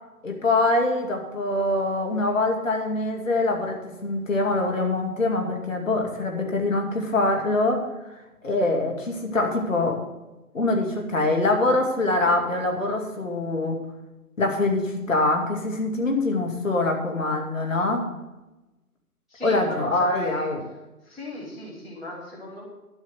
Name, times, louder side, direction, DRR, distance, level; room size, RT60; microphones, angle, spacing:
voice 1, 0.2-7.9 8.4-10.0 10.5-13.8 14.4-18.0 19.4-20.6, left 2 dB, 55° left, 2 dB, 2.5 m, -24 dB
voice 2, 19.3-20.5 21.0-22.6, left 1 dB, ahead, -12 dB, 1.4 m, -37 dB
12.0 x 5.7 x 7.7 m, 1.0 s
figure-of-eight pair, 155°, 46 cm